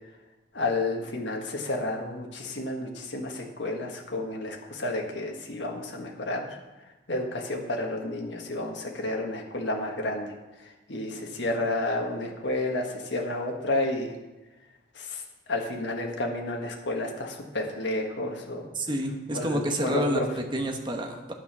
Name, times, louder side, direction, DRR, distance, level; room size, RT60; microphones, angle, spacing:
voice 1, 0.5-6.6 7.1-10.3 10.9-14.1 14.9-15.2 15.5-18.6 19.3-20.3, left 2 dB, 70° left, 1 dB, 1.6 m, -31 dB
voice 2, 18.7-21.3, right 1 dB, 25° right, 3 dB, 1.1 m, -29 dB
9.6 x 7.9 x 6.1 m, 1.1 s
head